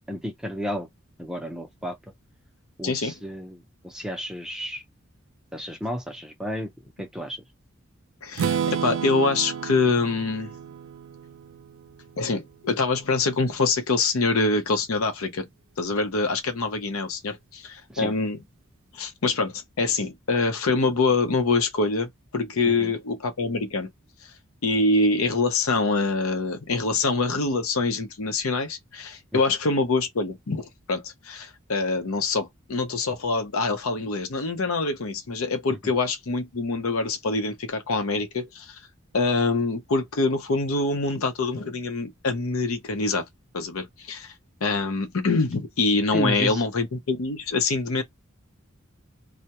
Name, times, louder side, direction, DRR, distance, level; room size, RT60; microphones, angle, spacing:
voice 1, 0.1-0.9 1.2-2.0 2.8-4.8 5.5-6.7 7.0-7.4 17.9-18.1 22.6-22.9 29.3-29.4 35.7-35.9 46.1-46.6, equal, 5° right, 0.5 m, -32 dB
voice 2, 2.8-3.1 8.2-10.5 12.2-15.4 15.8-18.4 18.9-23.9 24.6-30.6 30.9-38.8 39.1-43.2 43.5-44.3 44.6-48.0, left 3 dB, 85° left, 0.7 m, -25 dB
Strum, 8.4-12.3, right 7 dB, 80° right, 0.4 m, -31 dB
2.2 x 2.1 x 2.8 m
head